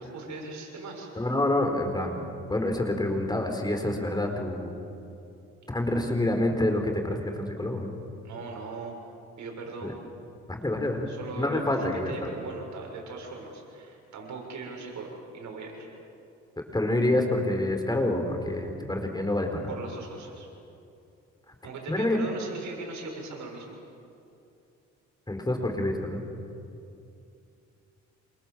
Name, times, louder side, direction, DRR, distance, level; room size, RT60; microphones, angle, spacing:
voice 1, 0.0-1.1 8.2-8.9 9.4-9.9 11.1-15.9 19.7-20.5 21.6-23.8, right 3 dB, 70° right, 1 dB, 7.1 m, -39 dB
voice 2, 1.2-2.2 2.5-4.7 5.7-7.9 9.8-9.9 10.5-11.1 11.4-12.3 16.7-19.7 21.5-21.6 21.9-22.2 25.3-26.2, left 1 dB, 15° left, 4 dB, 4.3 m, -27 dB
28.0 x 27.0 x 7.5 m, 2.7 s
cardioid pair, 90°, 30 cm